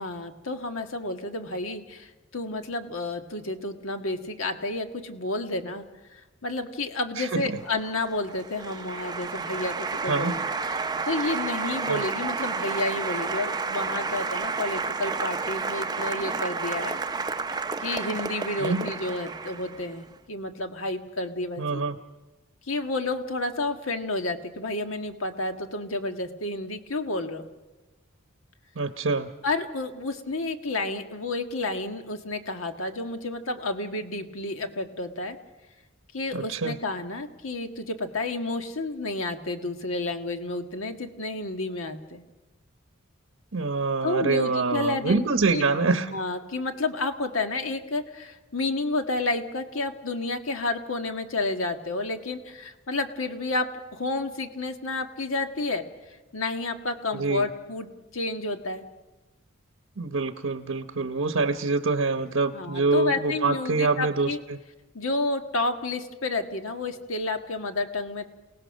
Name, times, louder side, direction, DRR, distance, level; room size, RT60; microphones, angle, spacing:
voice 1, 0.0-5.9 6.1-17.0 17.8-21.8 22.7-27.5 29.4-35.4 36.1-42.2 44.0-45.6 46.0-57.9 58.1-58.8 62.5-64.4 64.9-68.2, left 2 dB, 75° left, 6 dB, 1.6 m, -30 dB
voice 2, 7.2-7.6 10.1-10.4 11.9-12.0 18.6-18.9 21.6-22.0 28.8-29.3 36.3-36.8 43.5-46.1 57.1-57.5 60.0-64.6, right 3 dB, 70° right, 8 dB, 0.9 m, -25 dB
Applause, 7.5-20.0, right 4 dB, 20° right, 0.6 m, -31 dB
29.0 x 18.0 x 6.4 m, 1.2 s
head